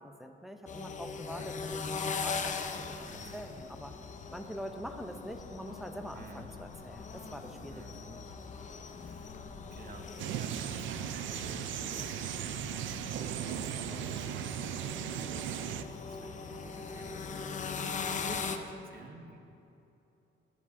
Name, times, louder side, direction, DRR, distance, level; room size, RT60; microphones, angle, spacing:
voice 1, 0.0-3.1 3.3-3.9 4.3-8.2 18.2-18.5, equal, ahead, 6 dB, 0.7 m, -44 dB
sound 1, 0.7-18.6, left 5 dB, 40° left, 0.7 m, -41 dB
voice 2, 1.4-1.7 3.0-3.5 6.1-6.5 7.7-8.0 9.0-13.8 14.2-19.4, right 3 dB, 50° right, 4 dB, 1.1 m, -51 dB
sound 2, 10.2-15.8, right 11 dB, 75° right, 0.4 m, -37 dB
13.5 x 9.4 x 2.8 m, 2.9 s
cardioid pair, 90°, 20 cm